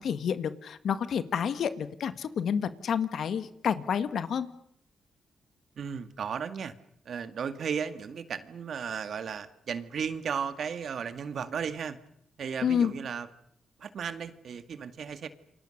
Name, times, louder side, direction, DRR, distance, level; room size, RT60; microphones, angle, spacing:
voice 1, 0.0-4.5 12.6-12.9, left 7 dB, 75° left, 11 dB, 1.8 m, -29 dB
voice 2, 5.8-6.7 7.1-12.0 12.4-13.3 13.8-15.3, right 7 dB, 70° right, 10 dB, 2.1 m, -35 dB
28.5 x 24.5 x 6.7 m, 0.70 s
cardioid pair, 65°, 0 cm